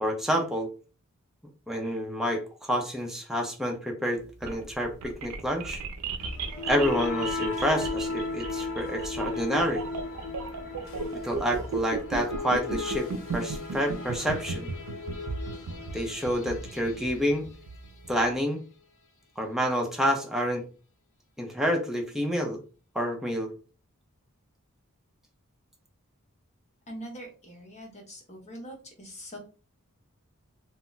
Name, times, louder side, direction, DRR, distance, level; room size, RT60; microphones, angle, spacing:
voice 1, 0.0-0.7 1.7-5.8 6.7-9.8 11.1-13.1 13.3-14.7 15.9-17.5 18.1-18.6 19.4-20.6 21.4-22.6 22.9-23.5, equal, ahead, 2 dB, 0.5 m, -28 dB
sound 1, 4.2-18.3, right 4 dB, 90° right, 0.4 m, -36 dB
sound 2, 6.2-18.1, left 4 dB, 60° left, 0.6 m, -36 dB
voice 2, 26.9-29.4, equal, 30° left, 0 dB, 0.9 m, -43 dB
2.1 x 2.1 x 3.8 m, 0.36 s
head